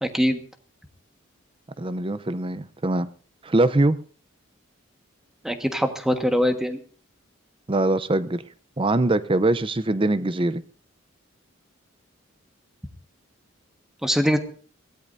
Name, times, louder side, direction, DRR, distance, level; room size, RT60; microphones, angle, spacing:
voice 1, 0.0-0.4 5.4-6.8 14.0-14.4, equal, ahead, 1.5 m, -22 dB
voice 2, 1.8-3.1 3.4-4.0 7.7-8.4 8.8-10.6, right 2 dB, 25° right, 0.6 m, -22 dB
23.0 x 17.0 x 2.7 m
head